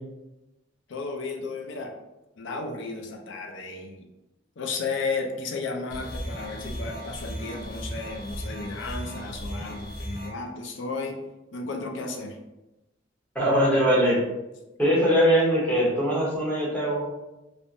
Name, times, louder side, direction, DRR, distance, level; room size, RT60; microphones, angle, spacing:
voice 1, 0.9-1.9 2.4-4.0 4.6-11.2 11.5-12.4, left 3 dB, 65° left, 2 dB, 0.5 m, -33 dB
sound 1, 5.9-10.3, equal, 45° left, 0.9 m, -36 dB
voice 2, 13.3-14.2 14.8-17.0, equal, 10° left, -6 dB, 0.9 m, -21 dB
3.3 x 2.1 x 2.5 m, 1.0 s
head